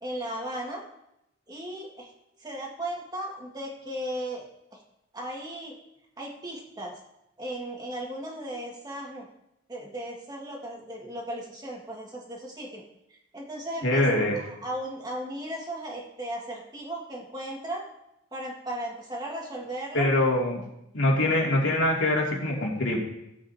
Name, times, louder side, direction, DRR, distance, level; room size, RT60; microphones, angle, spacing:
voice 1, 0.0-0.8 1.5-2.1 2.4-4.5 4.7-4.8 5.1-5.8 6.2-7.0 7.4-9.3 9.7-12.8 13.1-14.2 14.6-17.8 18.3-20.1, right 1 dB, 20° right, -2 dB, 1.9 m, -36 dB
voice 2, 13.8-14.4 19.9-20.6 20.9-23.0, left 1 dB, 85° left, -2 dB, 2.6 m, -24 dB
17.0 x 7.6 x 2.8 m, 0.85 s
head